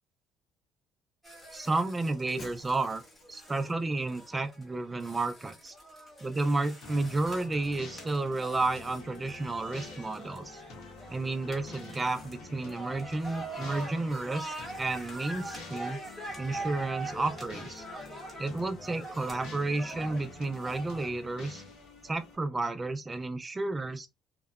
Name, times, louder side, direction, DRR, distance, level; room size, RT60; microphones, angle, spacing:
sound 1, 1.2-21.1, right 1 dB, 15° left, 1.0 m, -44 dB
voice 1, 1.5-3.0 3.3-5.7 6.2-10.6 11.1-16.0 16.4-17.8 18.4-21.6 22.0-24.1, right 2 dB, 15° right, 0.3 m, -32 dB
Shatter, 2.4-3.7, left 3 dB, 40° left, 1.0 m, -51 dB
sound 2, 6.8-22.4, left 3 dB, 75° left, 1.0 m, -48 dB
2.8 x 2.0 x 2.3 m
cardioid pair, 155°, 0 cm